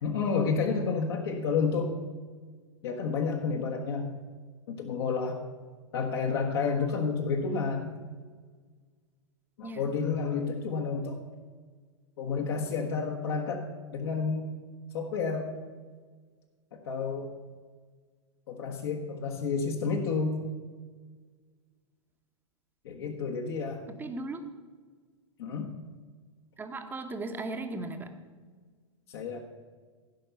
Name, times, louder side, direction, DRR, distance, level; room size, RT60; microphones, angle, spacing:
voice 1, 0.0-1.9 2.8-4.1 4.7-5.4 5.9-7.9 9.6-11.2 12.2-14.5 14.9-15.5 16.7-17.3 18.5-20.4 22.8-23.8 25.4-25.7 29.1-29.4, left 5 dB, 50° left, 1 dB, 1.4 m, -30 dB
voice 2, 23.9-24.4 26.6-28.1, right 2 dB, 10° right, 7 dB, 1.1 m, -37 dB
15.5 x 5.7 x 7.1 m, 1.5 s
figure-of-eight pair, 100°, 17 cm